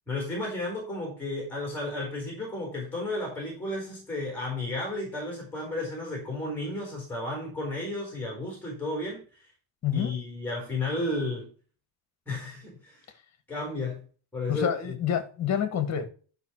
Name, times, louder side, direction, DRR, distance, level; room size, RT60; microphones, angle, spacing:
voice 1, 0.1-9.5 9.9-11.5 12.3-13.0 13.5-14.0 14.3-14.7, left 2 dB, 5° left, 3.9 m, -33 dB
voice 2, 9.8-10.1 14.5-16.1, left 8 dB, 35° left, 1.5 m, -27 dB
11.5 x 5.5 x 4.5 m
cardioid pair, 180°, 45 cm